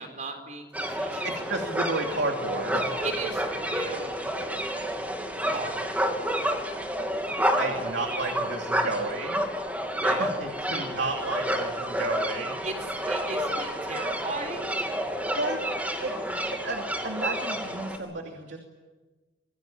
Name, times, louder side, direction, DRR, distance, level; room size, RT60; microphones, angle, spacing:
voice 1, 0.0-1.3 3.0-4.4 5.4-6.1 10.0-10.3 10.7-10.9 12.6-12.8 13.1-14.7, right 2 dB, 45° right, 5 dB, 3.9 m, -36 dB
sound 1, 0.7-18.0, equal, 10° right, 3.1 m, -30 dB
voice 2, 1.2-3.0 7.6-9.4 10.0-12.6 15.4-15.6 16.0-16.1 16.6-18.6, right 2 dB, 80° right, 2 dB, 2.8 m, -32 dB
26.5 x 22.5 x 9.0 m, 1.3 s
head